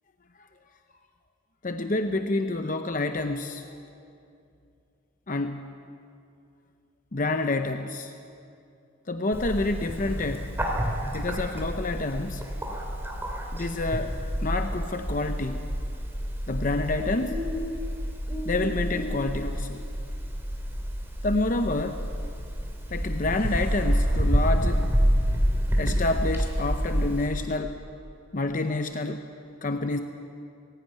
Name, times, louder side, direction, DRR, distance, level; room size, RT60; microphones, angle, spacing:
voice 1, 1.6-3.6 5.3-5.6 7.1-8.1 9.1-10.5 11.1-12.4 13.5-14.1 14.4-15.6 16.5-17.4 18.4-19.8 21.2-22.0 22.9-24.8 25.8-27.7 28.3-29.2 29.6-30.0, left 2 dB, 40° left, 7 dB, 0.7 m, -28 dB
Bird, 9.3-27.3, equal, 10° right, 2.8 m, -28 dB
19.0 x 16.0 x 9.4 m, 2.6 s
head